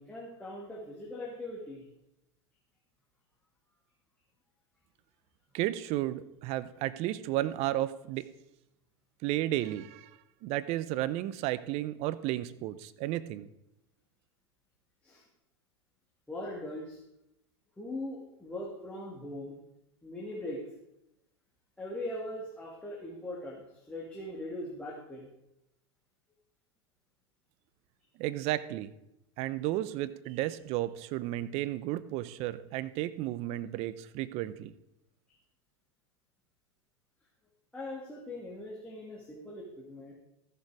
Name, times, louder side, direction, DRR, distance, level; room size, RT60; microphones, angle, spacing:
voice 1, 0.0-1.8 15.0-15.2 16.3-17.0 17.8-19.5 20.0-20.6 21.8-25.3 37.7-40.1, left 1 dB, 10° left, -5 dB, 2.1 m, -40 dB
voice 2, 5.5-8.3 9.2-10.1 10.4-13.5 28.2-28.9 29.4-34.7, right 15 dB, 50° right, 15 dB, 0.7 m, -33 dB
14.5 x 6.8 x 4.8 m, 0.87 s
hypercardioid pair, 110°, 14 cm